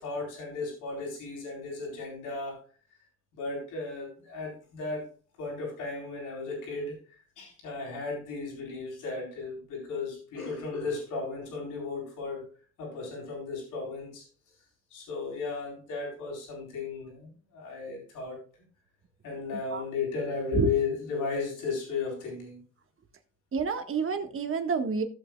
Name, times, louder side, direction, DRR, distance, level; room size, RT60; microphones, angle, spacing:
voice 1, 0.0-2.6 3.3-5.0 5.4-7.0 7.4-12.5 12.8-14.2 14.9-18.4 19.2-22.6, left 4 dB, 90° left, -1 dB, 4.3 m, -35 dB
voice 2, 23.5-25.0, right 5 dB, 45° right, 7 dB, 1.6 m, -28 dB
15.5 x 7.1 x 2.4 m, 0.38 s
cardioid pair, 90°, 30 cm